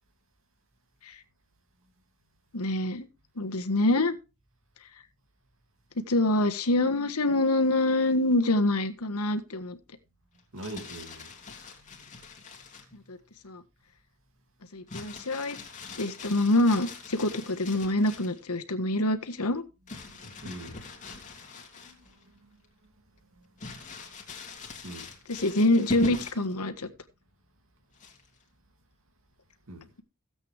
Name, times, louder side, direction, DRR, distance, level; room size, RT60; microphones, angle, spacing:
voice 1, 2.5-3.1 3.4-4.2 6.0-9.8 13.1-13.2 13.4-13.6 14.7-15.6 16.0-19.6 25.3-26.9, left 2 dB, 85° left, 1.5 m, -25 dB
Crumpling crinkling, 10.4-13.0 14.9-18.4 19.9-22.2 22.6-22.7 23.6-26.5 28.0-28.4, left 3 dB, 35° left, 2.8 m, -41 dB
voice 2, 10.5-11.3 11.8-12.1 20.1-21.2 21.7-22.6 23.3-23.5 24.8-25.2 29.7-29.9, right 1 dB, 65° right, 2.6 m, -44 dB
16.5 x 8.2 x 3.4 m
head